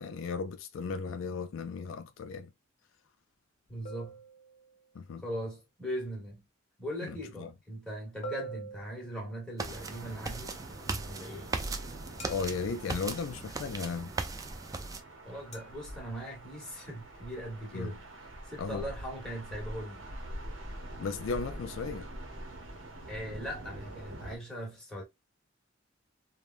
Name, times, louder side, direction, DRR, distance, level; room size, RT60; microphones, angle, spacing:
voice 1, 0.0-2.5 4.9-5.2 7.0-7.5 11.2-11.3 12.3-14.1 17.7-17.9 18.6-18.8 21.0-22.1, left 5 dB, 70° left, 0.3 m, -36 dB
voice 2, 3.7-4.2 5.2-6.4 6.8-10.6 11.0-11.5 15.2-18.0 18.5-20.1 23.1-25.0, equal, 5° left, 1.4 m, -40 dB
sound 1, 3.8-4.9 8.2-9.6 12.2-12.9 15.5-15.8, right 3 dB, 35° left, 0.9 m, -45 dB
sound 2, 9.6-15.0, right 3 dB, 20° right, 0.3 m, -38 dB
sound 3, 9.7-24.4, right 1 dB, 70° right, 0.9 m, -45 dB
3.3 x 2.2 x 2.4 m
head